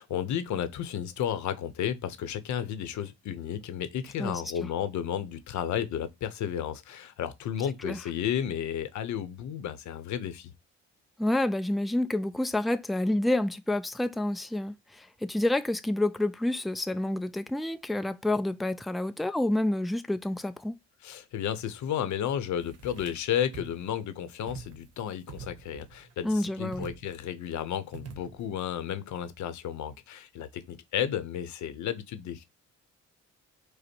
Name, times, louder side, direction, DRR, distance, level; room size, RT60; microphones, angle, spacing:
voice 1, 0.0-10.5 21.0-32.4, left 9 dB, 70° left, 0.7 m, -33 dB
voice 2, 11.2-20.8 26.2-26.9, left 1 dB, ahead, 0.3 m, -28 dB
sound 1, 22.6-23.2 23.5-23.9 24.5-25.0 25.3-26.1 26.7-27.3 27.9-28.6, right 6 dB, 55° right, 0.9 m, -45 dB
5.2 x 2.1 x 4.3 m
cardioid pair, 90°, 30 cm